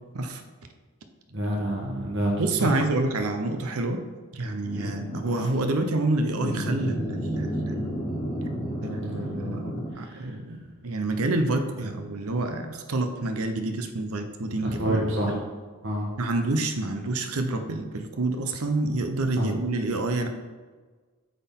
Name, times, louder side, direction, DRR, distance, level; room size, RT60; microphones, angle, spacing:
voice 1, 1.3-2.3 2.6-2.8 4.7-4.9 9.9-10.4 14.6-15.4 15.8-16.1 19.4-19.5, equal, 55° right, -2 dB, 1.1 m, -28 dB
voice 2, 2.4-4.0 4.3-7.9 8.8-15.0 15.3-15.4 16.2-20.3, right 2 dB, 80° right, 7 dB, 0.7 m, -28 dB
sound 1, 4.6-5.5 6.4-9.9, equal, 25° left, 1.8 m, -31 dB
8.2 x 3.9 x 3.7 m, 1.4 s
head